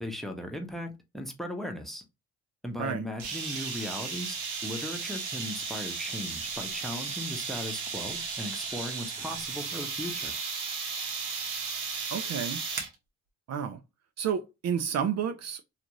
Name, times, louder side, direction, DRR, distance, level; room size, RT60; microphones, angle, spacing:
voice 1, 0.0-2.0 2.6-4.4 4.6-10.3, left 1 dB, ahead, 0.8 m, -37 dB
sound 1, 3.2-12.9, right 5 dB, 70° right, 0.9 m, -35 dB
voice 2, 12.1-12.6 13.5-13.8 14.2-15.6, right 8 dB, 55° right, 0.5 m, -30 dB
2.6 x 2.4 x 3.0 m
supercardioid pair, 65°, 32 cm